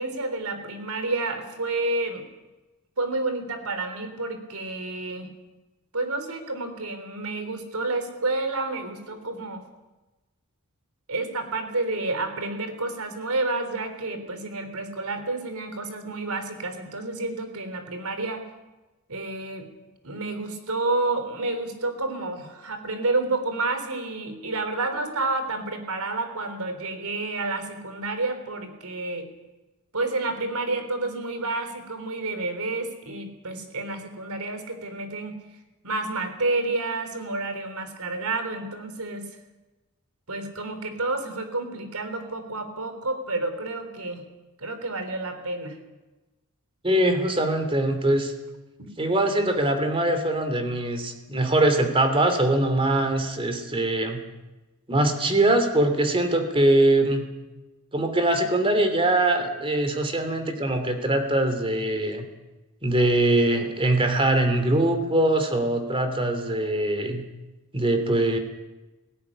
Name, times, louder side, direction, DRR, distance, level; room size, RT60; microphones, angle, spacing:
voice 1, 0.0-2.3 3.0-5.3 5.9-9.6 11.1-18.4 19.1-19.7 20.0-29.3 29.9-35.4 35.8-39.3 40.3-44.2 44.6-45.8 48.8-48.9, right 2 dB, 75° right, 8 dB, 3.6 m, -30 dB
voice 2, 46.8-48.3 49.0-54.2 54.9-57.3 57.9-62.3 62.8-67.2 67.7-68.4, right 1 dB, 25° right, 7 dB, 2.8 m, -22 dB
17.5 x 17.5 x 9.9 m, 1.1 s
head